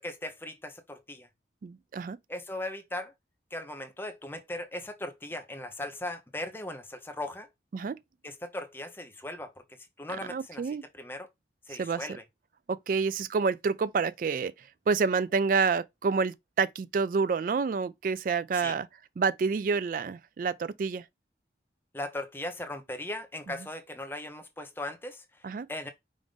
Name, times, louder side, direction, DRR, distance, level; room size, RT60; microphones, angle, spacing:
voice 1, 0.0-1.3 2.3-3.1 3.5-7.5 8.2-9.5 10.0-10.6 11.0-11.3 11.7-12.2 18.5-18.8 21.9-25.9, left 1 dB, 10° left, 0.6 m, -38 dB
voice 2, 1.6-2.2 7.7-8.0 10.3-10.9 11.8-12.1 12.7-18.9 19.2-21.1 25.4-25.7, right 5 dB, 50° right, 0.3 m, -28 dB
5.2 x 2.5 x 3.4 m
head